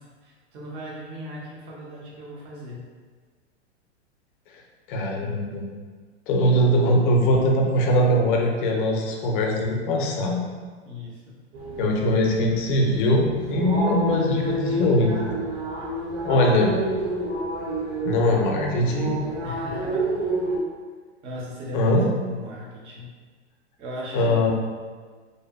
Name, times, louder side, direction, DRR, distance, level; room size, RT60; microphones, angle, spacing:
voice 1, 0.0-2.9 5.2-5.6 10.9-11.4 14.0-15.1 19.4-20.1 21.2-23.1 23.8-24.4, left 1 dB, 15° right, -4 dB, 0.3 m, -38 dB
voice 2, 4.9-5.6 6.3-10.4 11.8-15.2 16.2-16.7 18.0-19.2 21.7-22.1 24.1-24.5, left 1 dB, 50° left, 0 dB, 0.5 m, -21 dB
sound 1, 11.5-20.6, right 2 dB, 65° right, 0.7 m, -29 dB
2.6 x 2.2 x 2.2 m, 1.5 s
hypercardioid pair, 120°, 34 cm